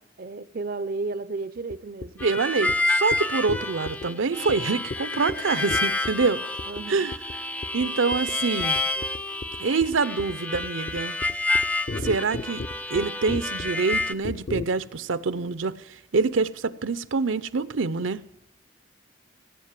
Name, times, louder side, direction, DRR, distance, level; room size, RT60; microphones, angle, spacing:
voice 1, 0.2-2.1 6.7-7.1, right 3 dB, 50° right, 0.5 m, -33 dB
sound 1, 1.7-2.3 2.7-2.8 3.1-3.2 3.5-4.1 4.5-4.6 4.9-5.0 5.3-5.4 5.7-6.3 6.6-6.8 7.1-7.4 7.6-7.9 8.1-8.3 8.6-14.7, left 3 dB, 50° left, 0.7 m, -34 dB
Harmonica, 2.2-14.1, left 2 dB, 5° left, 0.4 m, -29 dB
voice 2, 2.2-6.4 6.9-7.2 7.7-8.8 9.6-11.2 12.0-12.6 12.9-15.7 16.1-18.2, right 4 dB, 85° right, 0.7 m, -25 dB
16.5 x 8.1 x 7.5 m
head